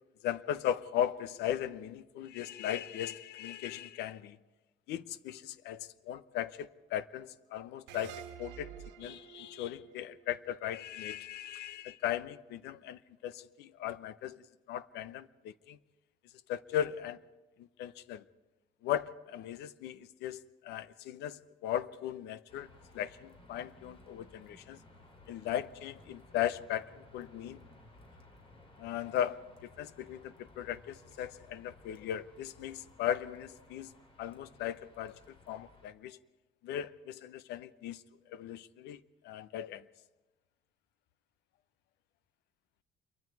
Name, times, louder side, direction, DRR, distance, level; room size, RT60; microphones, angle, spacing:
voice 1, 0.2-4.4 4.9-15.8 16.5-17.2 17.6-18.2 18.8-22.7 22.9-24.8 25.3-27.6 28.8-33.9 34.2-35.2 35.5-36.2 36.6-38.0 38.3-39.8, left 11 dB, 85° left, 0.9 m, -37 dB
sound 1, 7.9-11.2, right 10 dB, 90° right, 1.3 m, -49 dB
sound 2, 22.5-35.9, left 2 dB, 30° left, 3.6 m, -58 dB
27.5 x 23.0 x 4.8 m
cardioid pair, 110°, 17 cm